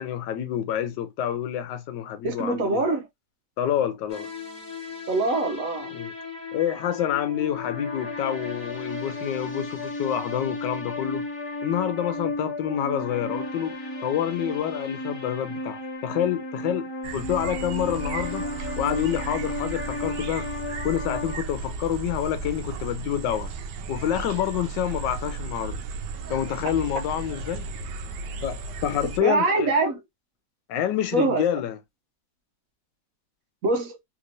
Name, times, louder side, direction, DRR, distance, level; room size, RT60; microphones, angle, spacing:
voice 1, 0.0-2.8 3.6-4.3 5.9-6.1 6.5-11.2 11.6-13.8 14.0-18.4 18.8-20.5 20.8-23.5 23.9-25.8 26.3-27.7 28.4-29.7 30.7-31.8, left 10 dB, 85° left, 1.3 m, -28 dB
voice 2, 2.2-3.1 5.1-5.9 29.2-30.0 31.1-31.4 33.6-33.9, right 2 dB, 60° right, 1.0 m, -23 dB
sound 1, 4.1-21.4, left 2 dB, 45° left, 1.4 m, -34 dB
sound 2, 17.0-29.2, right 4 dB, 80° right, 1.2 m, -35 dB
3.3 x 2.9 x 2.6 m
omnidirectional pair, 1.9 m